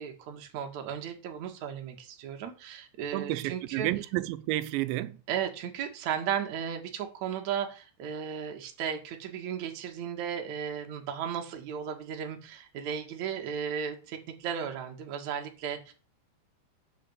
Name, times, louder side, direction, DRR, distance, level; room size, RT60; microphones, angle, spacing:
voice 1, 0.0-3.9 5.3-15.9, right 8 dB, 55° right, 2.4 m, -35 dB
voice 2, 3.1-5.2, right 16 dB, 90° right, 3.0 m, -31 dB
8.9 x 6.6 x 7.2 m
omnidirectional pair, 5.1 m